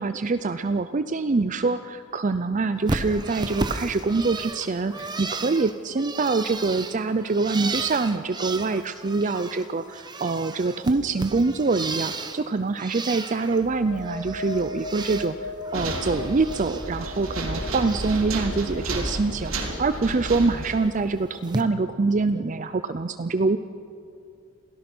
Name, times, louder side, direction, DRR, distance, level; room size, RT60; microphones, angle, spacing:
voice 1, 0.0-23.6, right 3 dB, 35° right, 11 dB, 0.5 m, -25 dB
Bird, 2.9-9.7 9.9-12.4 12.8-13.6 13.9-15.3 15.6-16.9 17.2-18.2 18.6-19.0 20.3-20.4 21.4-21.6, right 3 dB, 20° right, 1.0 m, -34 dB
sound 1, 13.5-21.0, left 1 dB, 60° left, 5.9 m, -39 dB
sound 2, 15.7-20.9, right 2 dB, 70° right, 3.6 m, -31 dB
28.0 x 17.5 x 6.1 m, 2.5 s
head